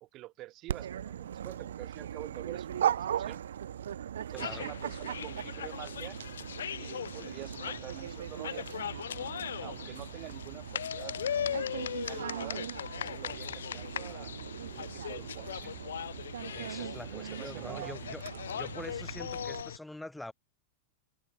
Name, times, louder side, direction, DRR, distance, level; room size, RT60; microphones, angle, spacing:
voice 1, 0.0-3.4 4.2-6.2 6.8-9.3 9.6-11.2 11.7-12.6 13.0-15.8 17.1-17.9, right 17 dB, 35° right, 0.8 m, -47 dB
Dog, 0.7-19.6, right 9 dB, 65° right, 0.3 m, -39 dB
voice 2, 4.3-4.7 16.5-18.2 18.5-20.3, left 1 dB, 5° left, 0.5 m, -45 dB
sound 1, 4.4-19.8, left 9 dB, 65° left, 0.4 m, -39 dB
figure-of-eight pair, 90°, 0 cm